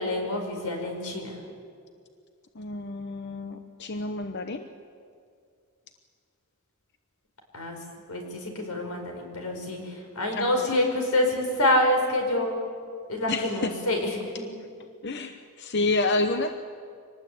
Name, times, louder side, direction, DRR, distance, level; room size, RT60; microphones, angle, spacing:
voice 1, 0.0-1.4 7.5-7.8 8.1-12.5 13.1-14.5, left 1 dB, 90° left, 3 dB, 5.1 m, -27 dB
voice 2, 2.5-4.7 10.3-10.7 13.3-13.8 15.0-16.5, left 2 dB, 50° left, 8 dB, 0.9 m, -29 dB
25.0 x 19.0 x 8.7 m, 2.3 s
head